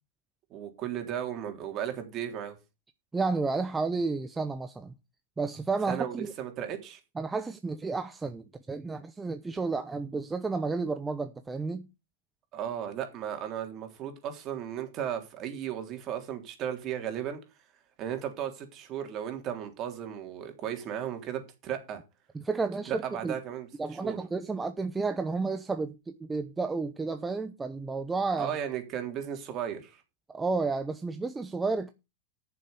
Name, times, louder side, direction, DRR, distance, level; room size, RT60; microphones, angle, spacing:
voice 1, 0.5-2.6 5.9-7.0 12.5-17.4 18.0-22.0 22.9-23.7 24.0-24.2 28.4-30.0, right 9 dB, 40° right, 3.5 m, -35 dB
voice 2, 3.1-4.9 5.4-6.3 7.2-11.9 22.3-23.3 23.8-28.5 30.3-31.9, right 4 dB, 15° right, 0.8 m, -31 dB
9.3 x 7.0 x 6.8 m
hypercardioid pair, 115°, 0 cm